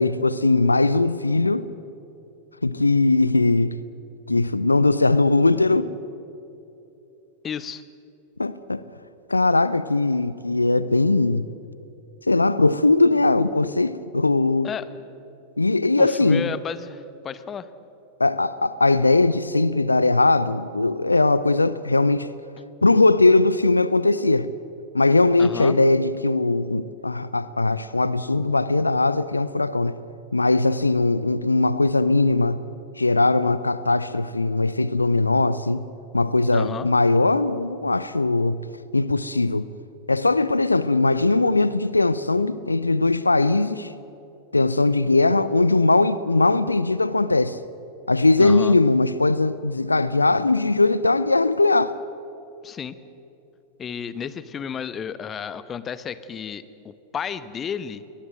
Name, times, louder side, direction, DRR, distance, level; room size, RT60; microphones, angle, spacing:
voice 1, 0.0-1.7 2.6-3.8 4.3-5.9 8.4-8.8 9.3-11.5 12.3-14.7 15.6-16.5 18.2-22.3 22.8-24.5 24.9-30.0 30.3-32.6 33.0-35.8 36.1-38.6 38.9-39.7 40.1-43.9 44.5-47.6 48.1-51.9, left 2 dB, 80° left, 0.6 m, -20 dB
voice 2, 7.4-7.8 14.6-14.9 16.0-17.7 25.4-25.8 36.5-36.9 48.4-48.8 52.6-53.0 53.8-58.0, left 7 dB, 25° left, 1.0 m, -32 dB
22.5 x 20.5 x 7.7 m
figure-of-eight pair, 90°, 0 cm